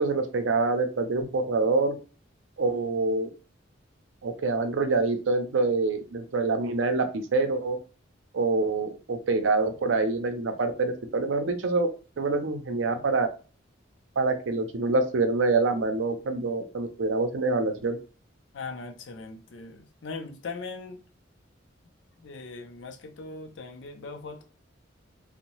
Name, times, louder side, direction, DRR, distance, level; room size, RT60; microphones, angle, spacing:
voice 1, 0.0-2.0 2.6-3.3 4.2-7.8 8.3-11.9 12.2-13.3 14.2-18.0, right 3 dB, 85° right, 0.5 m, -26 dB
voice 2, 18.5-21.0 22.2-24.4, left 3 dB, 70° left, 0.5 m, -40 dB
2.6 x 2.1 x 2.9 m
head